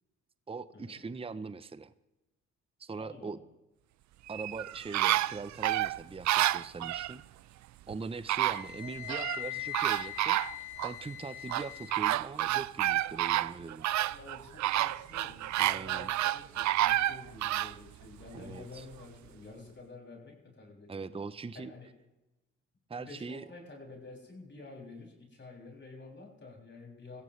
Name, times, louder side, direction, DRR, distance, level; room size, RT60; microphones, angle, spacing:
voice 1, 0.5-1.9 2.8-3.4 4.3-7.2 7.9-13.9 15.6-16.1 18.3-18.9 20.9-21.7 22.9-23.5, right 4 dB, 20° right, 15 dB, 0.7 m, -41 dB
voice 2, 2.9-3.4 14.1-21.2 21.5-21.9 23.0-27.2, left 3 dB, 35° left, -1 dB, 6.7 m, -50 dB
sound 1, 4.3-7.1 7.9-8.0 8.3-9.4 9.7-10.9 11.5-17.7 18.2-18.3, right 15 dB, 60° right, 0.5 m, -29 dB
Wind instrument woodwind instrument, 8.5-12.0, left 16 dB, 85° left, 1.9 m, -41 dB
21.5 x 15.5 x 3.3 m, 1.0 s
supercardioid pair, 55°, 31 cm